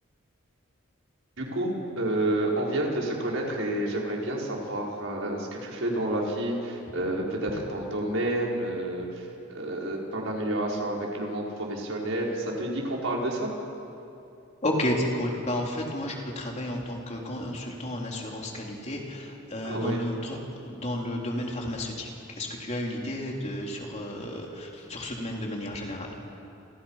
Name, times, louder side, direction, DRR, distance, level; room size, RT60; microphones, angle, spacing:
voice 1, 1.4-9.3 9.5-13.5 19.6-20.0, right 1 dB, 85° right, -2 dB, 5.4 m, -29 dB
voice 2, 14.6-20.4 20.7-22.1 22.4-26.1, left 1 dB, 35° left, -1 dB, 3.8 m, -32 dB
29.5 x 26.0 x 5.9 m, 2.8 s
head